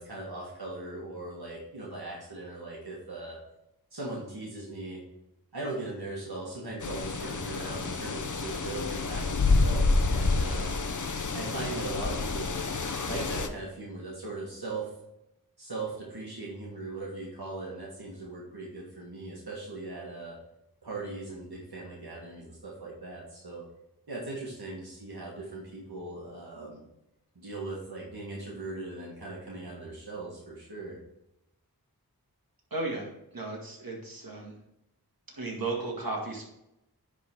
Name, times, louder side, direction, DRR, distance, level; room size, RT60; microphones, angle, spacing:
voice 1, 0.0-3.4 3.9-5.0 5.5-10.7 11.3-12.7 13.0-14.9 15.6-20.4 20.8-23.7 24.1-26.8 27.4-31.0, right 2 dB, 80° right, -4 dB, 1.8 m, -39 dB
sound 1, 6.8-13.5, left 3 dB, 55° left, 0.7 m, -28 dB
voice 2, 32.7-33.1 33.3-34.5 35.3-36.5, right 3 dB, 65° right, -1 dB, 2.1 m, -34 dB
10.5 x 3.8 x 4.5 m, 0.87 s
wide cardioid pair, 50°, 37 cm